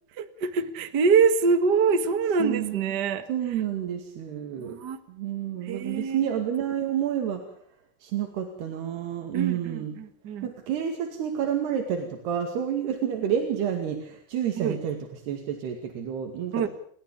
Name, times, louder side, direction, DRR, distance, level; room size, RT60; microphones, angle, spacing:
voice 1, 0.2-3.2 4.6-5.0 5.7-6.3 9.3-10.5 14.6-14.8 16.5-16.7, right 5 dB, 50° right, 10 dB, 1.2 m, -25 dB
voice 2, 2.4-2.9 3.3-4.7 5.1-7.4 8.0-10.0 10.4-16.7, right 9 dB, 85° right, 4 dB, 4.5 m, -29 dB
30.0 x 14.0 x 8.8 m, 0.63 s
omnidirectional pair, 4.6 m